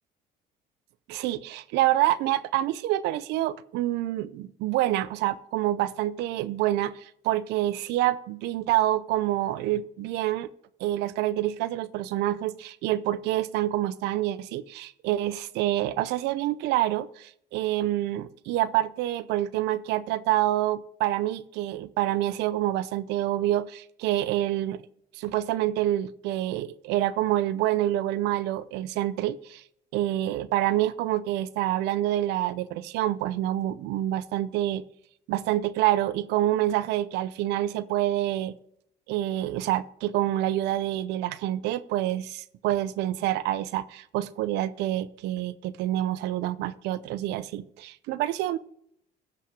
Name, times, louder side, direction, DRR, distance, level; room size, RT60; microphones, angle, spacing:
voice 1, 1.1-10.5 10.8-24.8 25.1-29.6 29.9-34.8 35.3-38.6 39.1-48.6, right 14 dB, 90° right, 16 dB, 0.6 m, -27 dB
15.5 x 5.7 x 5.0 m, 0.71 s
cardioid pair, 110°, 17 cm